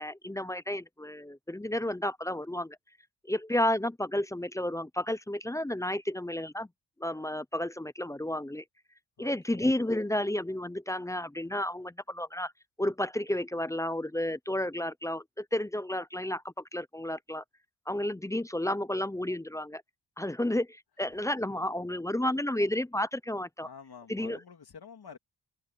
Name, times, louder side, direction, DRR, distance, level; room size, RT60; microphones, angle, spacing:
voice 1, 0.0-2.8 3.2-6.7 7.0-8.6 9.2-12.5 12.8-17.4 17.9-19.8 20.2-23.7 24.1-24.4, left 1 dB, 10° left, 0.3 m, -32 dB
voice 2, 9.2-9.6 23.6-25.2, left 6 dB, 55° left, 2.6 m, -49 dB
wide cardioid pair, 145°, 45 cm